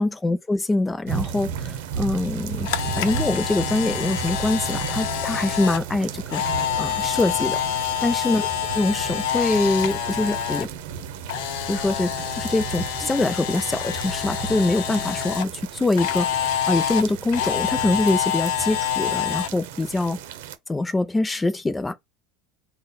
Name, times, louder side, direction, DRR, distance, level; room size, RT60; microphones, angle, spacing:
voice 1, 0.0-2.7 3.0-6.4 6.8-7.6 8.0-8.5 8.7-10.7 11.7-12.1 12.4-20.2 20.7-21.9, left 2 dB, 10° left, 0.4 m, -24 dB
sound 1, 1.1-20.6, right 8 dB, 75° right, 0.7 m, -34 dB
Camera, 2.3-10.7 11.0-15.4 16.0-19.5, left 10 dB, 65° left, 0.6 m, -27 dB
3.9 x 2.1 x 4.1 m
cardioid pair, 165°, 0 cm